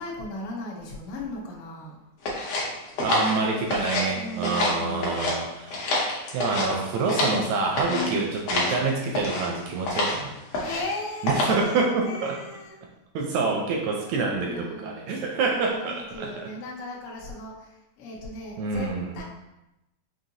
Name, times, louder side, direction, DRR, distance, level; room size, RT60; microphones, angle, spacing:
voice 1, 0.0-2.0 4.1-5.4 7.8-8.7 10.5-12.9 14.4-19.2, left 2 dB, 85° left, -3 dB, 1.2 m, -37 dB
sound 1, 2.2-4.1 4.4-5.4 5.7-7.4 7.8-8.1 8.5-8.8 9.1-9.5 9.9-10.2 10.5-10.9 11.3-11.7, left 2 dB, 65° left, 1.5 m, -27 dB
voice 2, 3.0-5.9 6.3-10.4 11.2-12.4 13.1-16.3 18.6-19.2, right 3 dB, 80° right, 0 dB, 1.6 m, -27 dB
5.5 x 2.7 x 2.7 m, 0.93 s
omnidirectional pair, 3.6 m